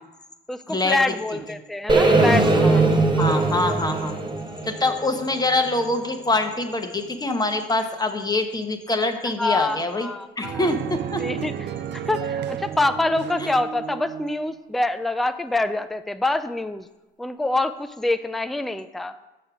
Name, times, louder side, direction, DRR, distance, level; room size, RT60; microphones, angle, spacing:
voice 1, 0.5-2.8 3.3-3.4 9.4-10.7 11.2-16.9 17.2-19.2, left 2 dB, ahead, 11 dB, 0.4 m, -26 dB
sound 1, 1.9-5.9, right 2 dB, 20° right, 1.0 m, -20 dB
voice 2, 2.6-4.2 4.7-10.1 10.4-11.3, left 2 dB, 20° left, 6 dB, 1.0 m, -25 dB
sound 2, 10.4-14.6, right 9 dB, 60° right, 0.5 m, -32 dB
6.8 x 6.4 x 5.9 m, 1.1 s
cardioid pair, 90°, 20 cm